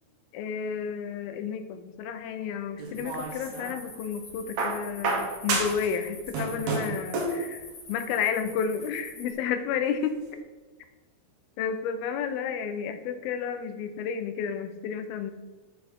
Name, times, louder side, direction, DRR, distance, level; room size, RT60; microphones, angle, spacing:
voice 1, 0.3-10.2 11.6-15.3, left 7 dB, 80° left, 8 dB, 2.6 m, -31 dB
sound 1, 2.8-3.8 4.6-5.9 6.2-7.4 8.5-8.6, right 3 dB, 90° right, 3.7 m, -30 dB
sound 2, 2.9-9.3, left 3 dB, 65° left, 4.3 m, -46 dB
11.0 x 6.4 x 4.8 m, 1.3 s
omnidirectional pair, 4.4 m